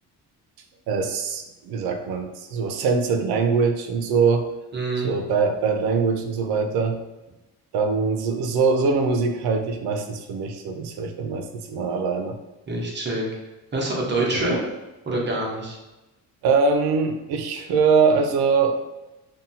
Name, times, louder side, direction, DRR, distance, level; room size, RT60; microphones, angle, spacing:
voice 1, 0.9-4.5 5.0-7.0 7.7-12.4 14.3-14.5 16.4-18.8, right 5 dB, 85° right, 5 dB, 0.5 m, -22 dB
voice 2, 4.7-5.1 12.7-13.2 13.7-14.6 15.1-15.8, right 2 dB, 30° right, -3 dB, 0.7 m, -25 dB
2.6 x 2.2 x 2.7 m, 1.0 s
cardioid pair, 120°, 37 cm